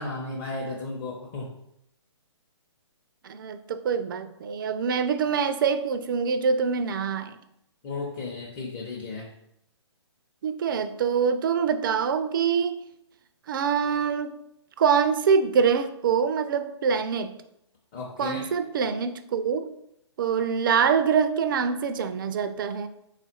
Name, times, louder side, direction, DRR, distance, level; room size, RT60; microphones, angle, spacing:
voice 1, 0.0-1.5 7.8-9.3 17.9-18.4, left 3 dB, 30° left, -3 dB, 0.6 m, -34 dB
voice 2, 3.2-7.4 10.4-12.8 13.5-14.3 14.8-17.3 18.2-19.7 20.2-22.9, right 6 dB, 45° right, 11 dB, 0.4 m, -25 dB
3.6 x 2.4 x 4.3 m, 0.80 s
figure-of-eight pair, 135°, 15 cm